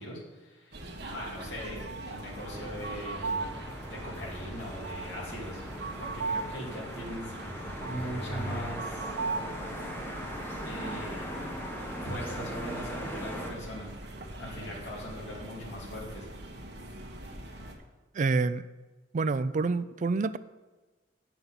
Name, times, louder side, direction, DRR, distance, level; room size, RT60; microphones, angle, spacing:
voice 1, 0.0-3.5 3.9-5.7 6.0-7.3 7.8-9.2 10.6-11.6 12.0-13.9 14.4-16.3, equal, 70° left, -5 dB, 2.8 m, -40 dB
sound 1, 0.7-17.8, right 3 dB, 60° right, 1.5 m, -40 dB
sound 2, 2.3-13.5, equal, 15° left, 1.5 m, -40 dB
voice 2, 18.1-18.6 19.1-20.4, right 3 dB, 45° right, 14 dB, 0.4 m, -27 dB
8.1 x 5.9 x 7.2 m, 1.2 s
head